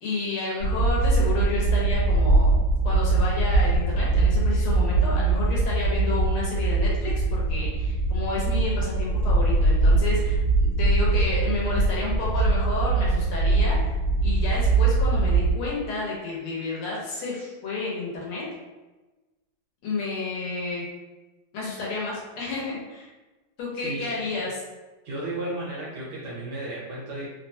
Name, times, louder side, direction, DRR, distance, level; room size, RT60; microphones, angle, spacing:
voice 1, 0.0-2.6 2.8-13.9 14.2-18.4 19.8-20.9 21.5-23.1 23.6-24.6, left 3 dB, 75° left, -4 dB, 1.8 m, -31 dB
sound 1, 0.6-15.5, right 3 dB, 60° left, 1.3 m, -22 dB
voice 2, 23.8-24.3 25.0-27.3, right 2 dB, 65° right, -6 dB, 1.1 m, -34 dB
3.8 x 2.2 x 2.6 m, 1.2 s
omnidirectional pair, 2.4 m